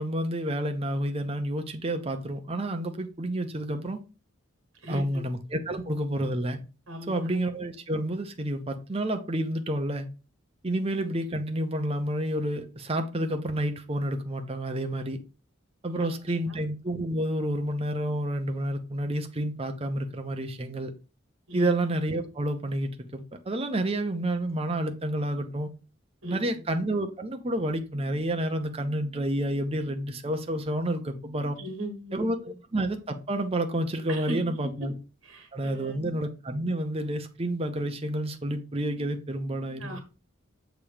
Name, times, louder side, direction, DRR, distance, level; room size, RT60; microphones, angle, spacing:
voice 1, 0.0-4.0 4.9-6.6 7.1-10.1 10.6-15.2 15.8-20.9 21.5-25.7 26.2-31.6 32.1-34.9 35.5-40.0, right 1 dB, 30° right, 0.7 m, -29 dB
voice 2, 4.8-5.2 5.7-5.9 6.9-7.4 15.9-16.3 21.5-21.7 26.2-26.6 31.6-32.5 34.1-34.4 35.2-36.2 39.8-40.0, right 1 dB, 80° right, 1.3 m, -39 dB
7.1 x 3.0 x 4.9 m
head